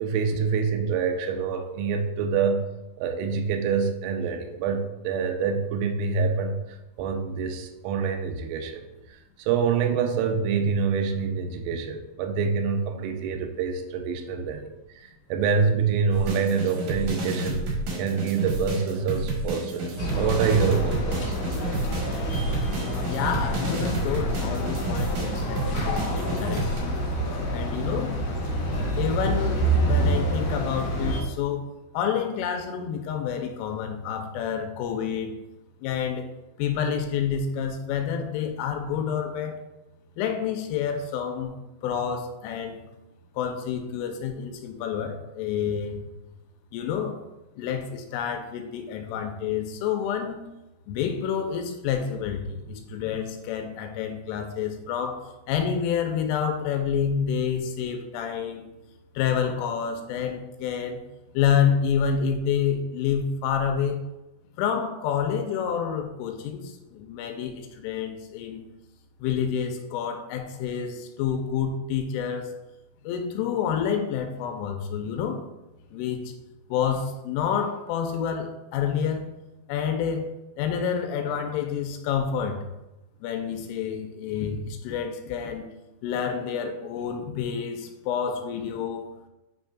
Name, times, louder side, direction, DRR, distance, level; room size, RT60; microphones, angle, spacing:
voice 1, 0.0-2.6 3.0-8.8 9.1-14.7 15.0-21.4, right 5 dB, 85° right, 5 dB, 3.3 m, -26 dB
sound 1, 16.1-26.8, right 2 dB, 65° right, 2.1 m, -31 dB
sound 2, 20.0-31.2, right 1 dB, 60° left, 3.2 m, -27 dB
voice 2, 23.0-26.7 27.5-28.2 29.0-31.6 31.9-35.3 35.8-36.3 36.6-39.6 40.2-41.5 41.8-42.8 43.4-46.0 46.7-47.2 47.6-50.4 50.9-55.2 55.5-58.7 59.2-61.0 61.3-64.0 64.6-68.6 69.2-72.5 73.0-75.4 75.9-76.2 76.7-79.3 79.7-80.3 80.6-82.6 83.2-85.6 86.0-89.1, left 7 dB, 85° left, 5 dB, 3.0 m, -28 dB
9.1 x 5.2 x 2.4 m, 0.98 s
omnidirectional pair, 5.9 m